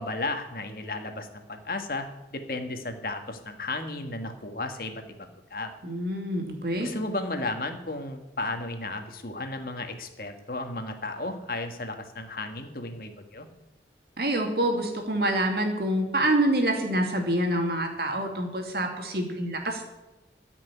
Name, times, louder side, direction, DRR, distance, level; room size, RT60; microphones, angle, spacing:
voice 1, 0.0-5.7 6.8-13.5, left 2 dB, 55° left, 6 dB, 1.6 m, -34 dB
voice 2, 5.8-6.9 14.2-19.8, right 1 dB, 60° right, 3 dB, 2.5 m, -26 dB
14.0 x 6.1 x 10.0 m, 1.1 s
head